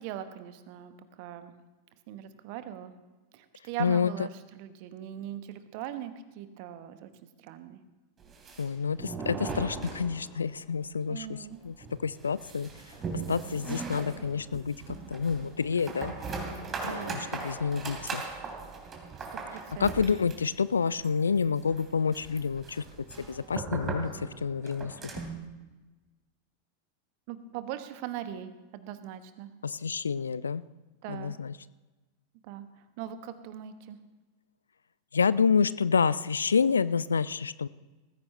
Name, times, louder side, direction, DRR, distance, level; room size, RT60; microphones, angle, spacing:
voice 1, 0.0-1.5 2.1-2.9 3.3-7.1 7.4-7.8 11.1-11.6 16.7-17.2 19.3-19.9 27.3-29.5 31.0-31.3 32.4-32.7 33.0-34.0, right 11 dB, 45° right, 10 dB, 1.2 m, -40 dB
voice 2, 3.8-4.3 8.6-11.8 12.0-12.7 13.3-16.1 16.8-18.2 19.8-22.8 23.2-24.9 29.6-30.6 31.1-31.5 35.1-37.7, left 6 dB, 70° left, 18 dB, 0.3 m, -28 dB
sound 1, 8.2-10.6 10.8-10.9 11.3-11.4 11.8-25.4, right 4 dB, 25° right, 2.9 m, -39 dB
20.0 x 15.0 x 3.3 m, 1.2 s
figure-of-eight pair, 90°, 0 cm